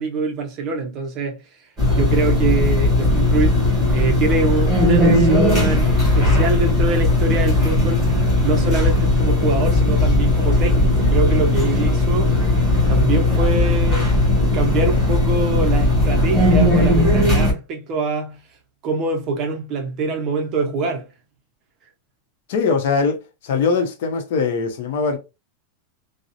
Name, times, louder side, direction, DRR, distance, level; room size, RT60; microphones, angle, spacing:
voice 1, 0.0-1.4 1.9-3.6 3.9-8.1 8.4-12.4 12.9-14.1 14.5-18.4 18.8-21.1, right 3 dB, 30° right, 0.5 m, -24 dB
sound 1, 1.8-17.5, left 2 dB, 5° right, 1.2 m, -17 dB
voice 2, 22.5-23.2 23.4-25.2, left 5 dB, 65° left, 0.6 m, -21 dB
2.7 x 2.0 x 2.4 m
supercardioid pair, 165°, 0 cm